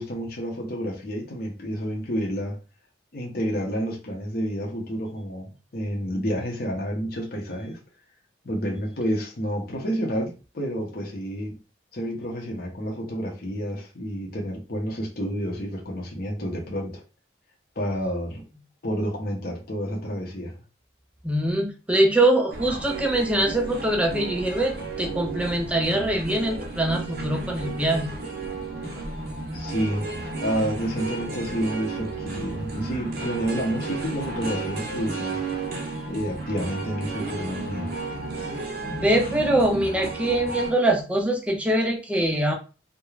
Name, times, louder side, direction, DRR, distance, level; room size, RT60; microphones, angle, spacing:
voice 1, 0.0-2.6 3.1-7.8 8.4-11.5 11.9-17.0 17.8-18.4 18.8-20.5 29.5-30.0 30.4-35.4 36.1-37.9, equal, 50° left, 0.6 m, -29 dB
voice 2, 21.2-28.1 38.9-42.5, right 1 dB, 5° right, 0.4 m, -23 dB
sound 1, 22.5-40.7, right 3 dB, 50° right, 0.6 m, -33 dB
2.3 x 2.1 x 3.1 m
head